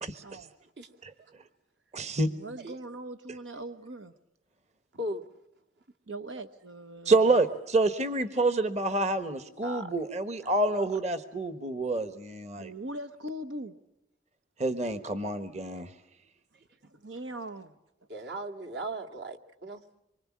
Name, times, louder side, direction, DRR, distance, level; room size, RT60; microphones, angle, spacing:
voice 1, 0.0-0.4 1.0-1.1 1.9-2.3 7.0-12.7 14.6-15.9, right 2 dB, 35° right, 11 dB, 1.3 m, -27 dB
voice 2, 2.3-4.1 6.1-7.2 12.6-13.7 16.8-17.7, right 1 dB, 80° right, 8 dB, 1.1 m, -40 dB
voice 3, 4.9-5.2 9.6-9.9 10.4-10.9 18.1-19.8, right 1 dB, 65° right, 3 dB, 2.3 m, -38 dB
25.5 x 24.0 x 7.4 m, 0.88 s
head